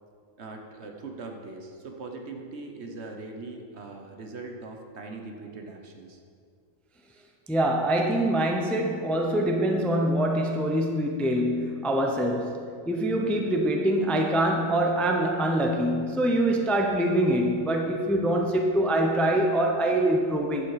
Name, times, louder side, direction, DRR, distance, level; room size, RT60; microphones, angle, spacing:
voice 1, 0.4-6.2, right 3 dB, 55° right, 3 dB, 1.2 m, -41 dB
voice 2, 7.5-20.7, right 1 dB, ahead, 2 dB, 0.6 m, -24 dB
11.0 x 7.4 x 4.8 m, 2.2 s
omnidirectional pair, 1.4 m